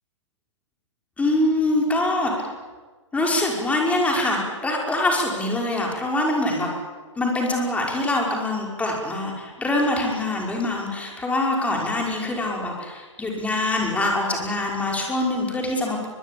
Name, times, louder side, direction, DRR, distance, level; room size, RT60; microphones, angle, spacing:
voice 1, 1.2-2.5 3.1-6.7 7.2-16.1, left 2 dB, 10° left, 0 dB, 5.6 m, -24 dB
23.5 x 22.0 x 8.8 m, 1.4 s
figure-of-eight pair, 115°, 16 cm